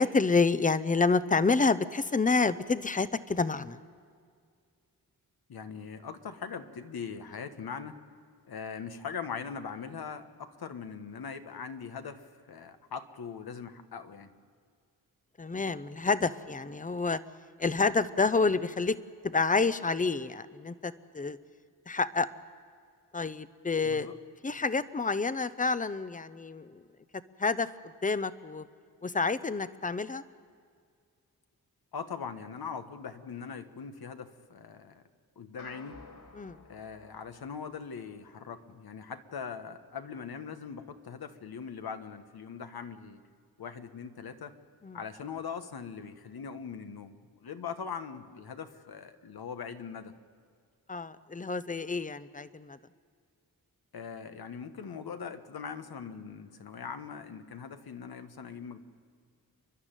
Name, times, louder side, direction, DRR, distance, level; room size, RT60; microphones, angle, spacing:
voice 1, 0.0-3.8 15.4-17.2 17.6-19.0 19.2-21.4 21.9-22.3 23.1-24.1 24.4-26.8 27.4-27.7 28.0-28.6 29.0-30.2 36.4-36.6 44.8-45.0 50.9-52.8, left 4 dB, 20° left, 14 dB, 0.7 m, -28 dB
voice 2, 5.5-8.0 8.5-14.3 23.8-24.1 31.9-35.0 35.4-36.0 36.7-43.2 43.6-44.6 44.9-50.1 53.9-58.8, left 6 dB, 80° left, 8 dB, 1.4 m, -41 dB
sound 1, 35.6-38.1, left 3 dB, 65° left, 4.5 m, -53 dB
29.0 x 12.0 x 9.1 m, 2.1 s
wide cardioid pair, 110°, 37 cm